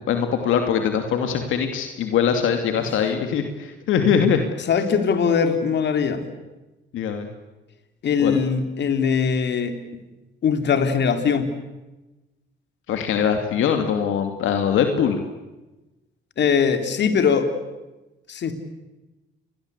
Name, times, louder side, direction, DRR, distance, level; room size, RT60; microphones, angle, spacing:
voice 1, 0.0-4.4 6.9-7.3 8.2-8.4 12.9-15.2, left 7 dB, 80° left, 5 dB, 2.7 m, -22 dB
voice 2, 4.6-6.2 8.0-10.0 10.4-11.5 16.4-17.5 18.3-18.5, left 6 dB, 60° left, 8 dB, 3.5 m, -21 dB
29.5 x 22.5 x 8.3 m, 1.1 s
cardioid pair, 90°, 20 cm